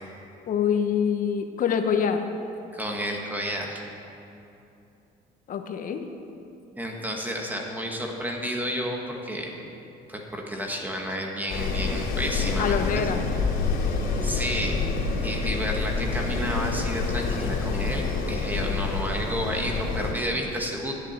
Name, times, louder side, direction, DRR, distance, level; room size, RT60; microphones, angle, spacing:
voice 1, 0.5-2.2 5.5-6.1 12.6-13.2, left 7 dB, 55° left, 6 dB, 1.1 m, -25 dB
voice 2, 2.7-3.8 6.8-9.5 10.1-13.0 14.2-14.8 15.2-20.9, equal, 10° right, 0 dB, 1.8 m, -31 dB
Wind, 11.5-20.1, left 4 dB, 70° left, 3.6 m, -27 dB
11.5 x 7.4 x 9.2 m, 2.8 s
cardioid pair, 110°, 17 cm